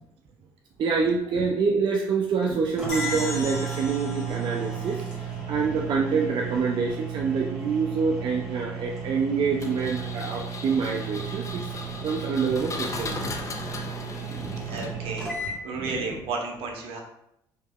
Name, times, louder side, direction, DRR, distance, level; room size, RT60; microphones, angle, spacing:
voice 1, 0.8-13.3 14.1-14.3 15.9-16.0, right 5 dB, 50° right, 1 dB, 0.5 m, -26 dB
sound 1, 2.4-2.5 2.8-15.6, right 6 dB, 5° right, 1.4 m, -34 dB
sound 2, 2.9-6.2, left 1 dB, 65° left, 1.1 m, -38 dB
Engine, 9.6-15.3, left 3 dB, 30° left, 0.6 m, -37 dB
voice 2, 14.3-15.3 15.6-17.0, right 4 dB, 65° right, 1 dB, 0.9 m, -32 dB
4.5 x 2.8 x 2.3 m, 0.78 s
supercardioid pair, 70°, 10 cm